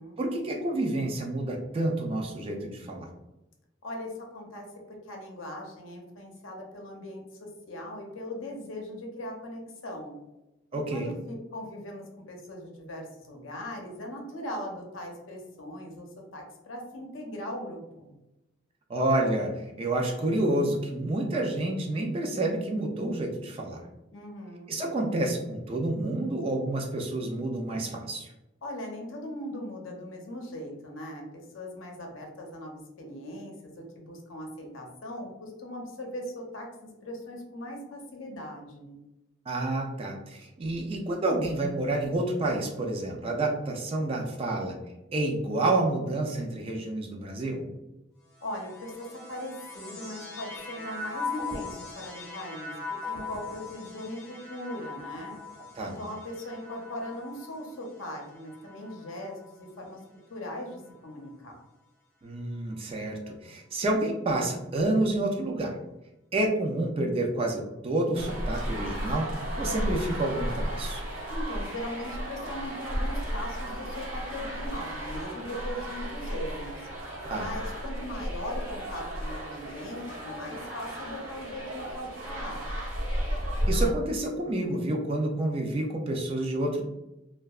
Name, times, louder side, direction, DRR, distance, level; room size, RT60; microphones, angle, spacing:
voice 1, 0.2-3.1 10.7-11.1 18.9-23.8 24.7-28.3 39.5-44.7 45.1-47.7 55.8-56.0 62.2-65.8 66.3-69.3 69.6-71.0 77.3-77.5 83.7-86.8, right 2 dB, 30° right, 2 dB, 0.3 m, -29 dB
voice 2, 3.8-10.2 10.7-16.1 16.3-18.1 24.1-24.7 28.6-36.7 37.0-39.0 48.4-52.7 53.0-55.4 55.8-60.0 60.3-61.6 71.3-76.9 77.3-82.7, left 1 dB, 80° left, 1 dB, 0.6 m, -39 dB
sound 1, 48.3-59.8 60.5-61.3, left 3 dB, 15° left, 0.6 m, -41 dB
sound 2, 68.1-83.9, equal, 80° right, 0.8 m, -33 dB
2.7 x 2.2 x 2.3 m, 0.96 s
head